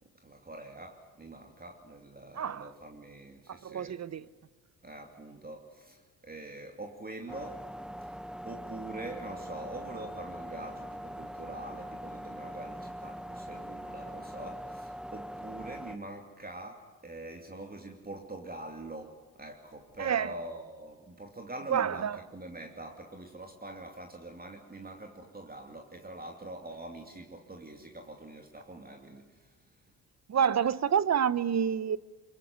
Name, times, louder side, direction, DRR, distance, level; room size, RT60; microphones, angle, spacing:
voice 1, 0.0-4.0 4.8-7.7 8.0-29.6, right 2 dB, 20° right, 2.8 m, -44 dB
voice 2, 2.3-2.7 3.5-4.3 20.0-20.3 21.7-22.2 30.3-32.0, right 8 dB, 40° right, 1.0 m, -28 dB
sound 1, 7.3-16.0, equal, ahead, 0.8 m, -42 dB
22.5 x 22.0 x 9.6 m
supercardioid pair, 65°, 40 cm